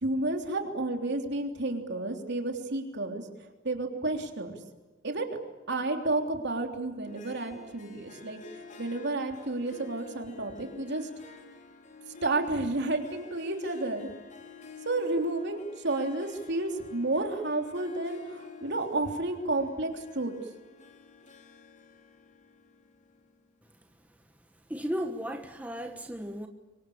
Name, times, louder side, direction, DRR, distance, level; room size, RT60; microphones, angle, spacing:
voice 1, 0.0-3.3 3.6-4.5 5.0-5.3 5.7-8.4 8.8-11.1 12.2-14.1 14.8-20.3, right 2 dB, 60° right, 3.4 m, -31 dB
Harp, 7.0-23.5, left 5 dB, 40° left, 3.0 m, -50 dB
voice 2, 24.7-26.5, equal, 5° right, 1.2 m, -35 dB
26.5 x 24.0 x 8.7 m
head